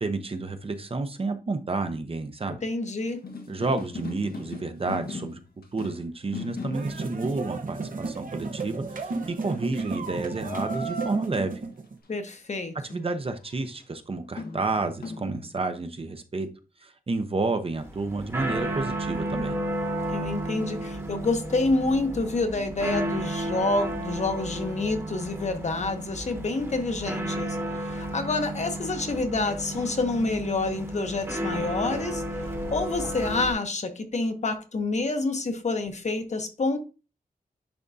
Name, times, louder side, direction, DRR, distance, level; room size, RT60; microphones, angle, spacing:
voice 1, 0.0-2.6 3.5-5.4 5.7-11.5 12.9-16.5 16.8-19.6, right 3 dB, 40° right, 0.7 m, -30 dB
voice 2, 2.6-3.2 12.1-13.1 20.1-32.2 32.7-36.8, left 3 dB, 50° left, 0.9 m, -28 dB
sound 1, 3.1-6.1 6.3-6.9 7.7-7.8 8.4-8.7 9.1-9.2 9.4-10.1 10.4-11.3 11.6-11.8 12.1-12.2 13.8-13.9 14.4-15.5, left 2 dB, 85° left, 1.3 m, -37 dB
sound 2, 6.7-11.9, right 3 dB, 65° right, 0.9 m, -33 dB
sound 3, 17.7-33.5, right 1 dB, 15° right, 1.1 m, -32 dB
10.5 x 3.6 x 2.7 m
wide cardioid pair, 125°, 15 cm